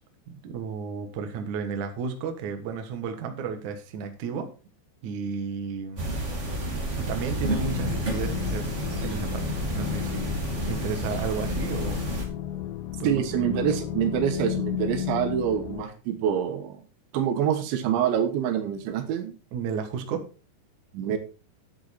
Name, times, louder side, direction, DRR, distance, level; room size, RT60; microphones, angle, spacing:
voice 1, 0.3-4.5 5.0-6.1 7.0-8.7 9.0-9.5 9.7-10.3 10.6-12.1 13.0-13.6 19.5-20.3, right 6 dB, 60° right, 6 dB, 2.3 m, -33 dB
sound 1, 6.0-12.2, right 1 dB, 35° right, 1.2 m, -30 dB
sound 2, 7.6-15.8, left 12 dB, 85° left, 3.0 m, -33 dB
voice 2, 13.0-16.8 17.1-19.3 20.9-21.2, right 9 dB, 85° right, 7 dB, 3.6 m, -26 dB
10.5 x 7.9 x 4.2 m, 0.34 s
omnidirectional pair, 5.1 m